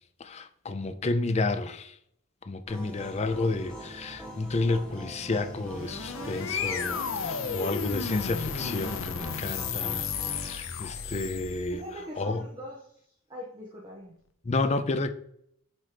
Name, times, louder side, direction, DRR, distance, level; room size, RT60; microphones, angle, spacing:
voice 1, 0.2-1.9 2.5-11.8 12.2-12.4 14.5-15.1, left 2 dB, 30° left, 0.5 m, -31 dB
sound 1, 2.7-10.5, right 1 dB, 5° left, 1.2 m, -42 dB
sound 2, 5.5-11.9, left 6 dB, 75° left, 0.7 m, -33 dB
voice 2, 6.0-6.9 11.7-13.0 13.3-14.2, left 1 dB, 20° right, 1.0 m, -43 dB
7.5 x 3.0 x 5.0 m
head